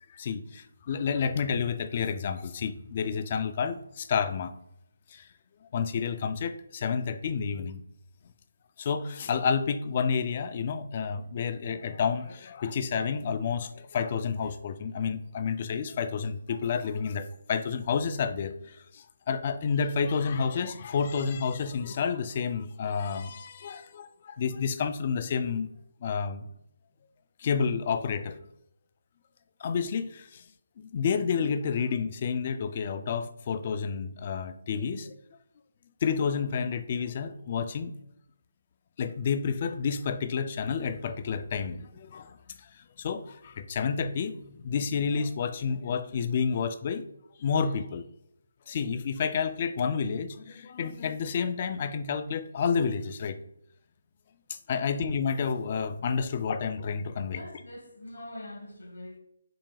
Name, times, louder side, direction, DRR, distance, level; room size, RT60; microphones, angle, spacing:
voice 1, 0.1-4.5 5.1-5.3 5.7-7.8 8.8-25.7 26.0-26.5 27.4-28.4 29.6-30.4 30.8-35.1 36.0-38.0 39.0-47.1 47.4-48.1 48.7-53.4 54.5-57.4, left 6 dB, 35° left, 11 dB, 0.3 m, -30 dB
voice 2, 57.3-59.2, left 1 dB, 70° left, 2 dB, 1.1 m, -43 dB
5.9 x 2.2 x 3.3 m, 0.78 s
figure-of-eight pair, 150°, 0 cm